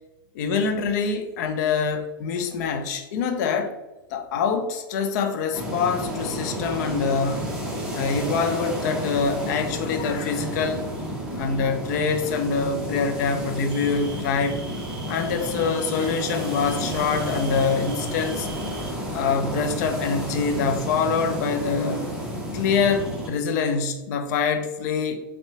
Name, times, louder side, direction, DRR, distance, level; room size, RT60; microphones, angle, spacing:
voice 1, 0.3-3.7 4.1-7.5 7.9-10.9 11.3-14.6 15.1-18.5 19.1-22.0 22.5-25.2, left 5 dB, 50° left, 6 dB, 0.5 m, -25 dB
sound 1, 5.5-23.3, equal, 5° right, 0.9 m, -31 dB
Cricket, 13.7-18.9, right 3 dB, 40° right, 1.1 m, -43 dB
5.3 x 2.3 x 2.8 m, 1.1 s
figure-of-eight pair, 95°, 12 cm